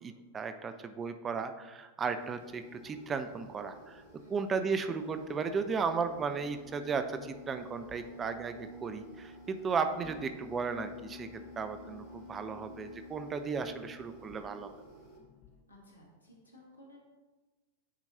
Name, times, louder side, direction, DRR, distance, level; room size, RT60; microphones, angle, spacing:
voice 1, 0.0-4.0 4.3-11.3 11.6-14.7, right 5 dB, 20° right, 9 dB, 0.4 m, -35 dB
sound 1, 2.2-15.2, right 1 dB, 45° right, 1.7 m, -56 dB
sound 2, 2.8-15.6, left 2 dB, 30° left, 0.8 m, -52 dB
voice 2, 4.2-4.5 15.7-17.0, left 1 dB, 80° left, -1 dB, 1.5 m, -57 dB
8.5 x 4.5 x 2.8 m, 1.3 s
figure-of-eight pair, 90°, 0 cm